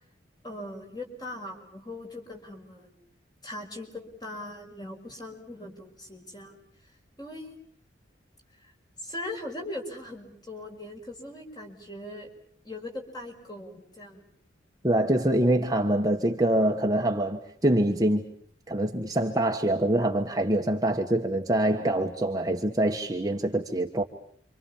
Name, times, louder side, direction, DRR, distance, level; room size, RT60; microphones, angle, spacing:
voice 1, 0.4-2.9 3.4-6.6 7.2-7.6 9.0-12.3 12.6-14.3, left 1 dB, 20° left, 5.8 m, -40 dB
voice 2, 14.8-18.2 18.7-24.0, right 1 dB, 20° right, 1.5 m, -25 dB
29.0 x 26.0 x 7.3 m
head